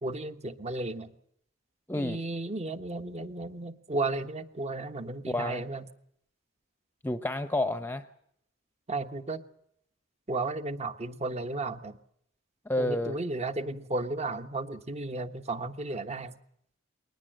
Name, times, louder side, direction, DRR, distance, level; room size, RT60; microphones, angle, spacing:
voice 1, 0.0-1.1 1.9-5.8 8.9-9.4 10.3-12.0 12.8-16.4, right 2 dB, 35° right, 10 dB, 1.3 m, -34 dB
voice 2, 1.9-2.2 5.3-5.6 7.0-8.0 12.6-13.2, left 1 dB, 10° left, 10 dB, 0.8 m, -30 dB
22.0 x 19.0 x 7.7 m, 0.70 s
head